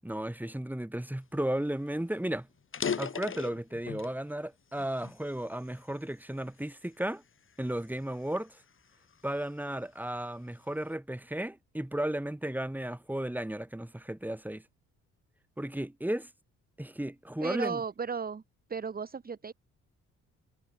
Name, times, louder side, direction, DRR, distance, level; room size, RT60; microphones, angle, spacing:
voice 1, 0.0-2.5 3.0-7.2 7.6-8.6 9.2-14.6 15.6-16.3 16.8-17.8, right 1 dB, 5° right, 8.0 m, -34 dB
sound 1, 1.5-1.6 1.9-2.1 2.6-4.2 4.7-6.0 6.6-6.9 7.5-9.5, left 6 dB, 40° left, 3.8 m, -38 dB
voice 2, 17.4-18.4 18.7-19.5, right 5 dB, 30° right, 1.7 m, -35 dB
cardioid pair, 90°, 30 cm